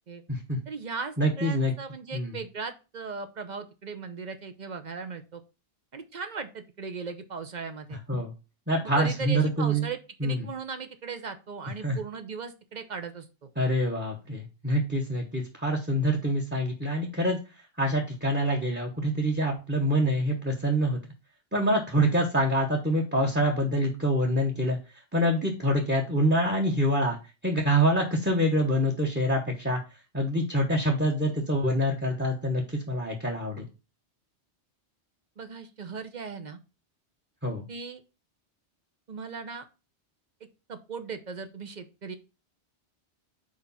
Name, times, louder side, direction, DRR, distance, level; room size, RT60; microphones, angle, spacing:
voice 1, 0.7-5.4 5.9-8.0 9.0-13.5 35.4-36.6 37.7-38.0 39.1-39.7 40.7-42.1, right 5 dB, 45° right, 9 dB, 0.8 m, -38 dB
voice 2, 1.2-1.7 2.1-2.4 8.1-8.3 8.7-9.9 10.2-10.5 11.8-12.0 13.6-21.0 21.5-24.8 25.1-27.2 27.4-29.8 30.1-33.7 37.4-37.6, equal, 10° right, 1 dB, 1.0 m, -26 dB
5.0 x 4.5 x 5.5 m, 0.30 s
omnidirectional pair, 1.2 m